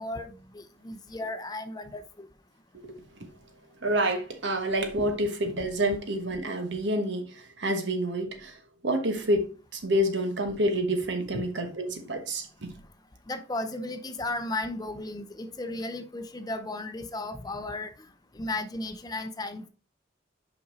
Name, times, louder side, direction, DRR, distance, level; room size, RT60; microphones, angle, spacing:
voice 1, 0.0-2.3 11.3-11.4 13.3-17.9 18.3-19.7, left 2 dB, 20° left, 0.7 m, -35 dB
voice 2, 3.8-8.5 8.8-12.7, right 1 dB, 65° right, 1.2 m, -28 dB
5.8 x 5.3 x 3.9 m
head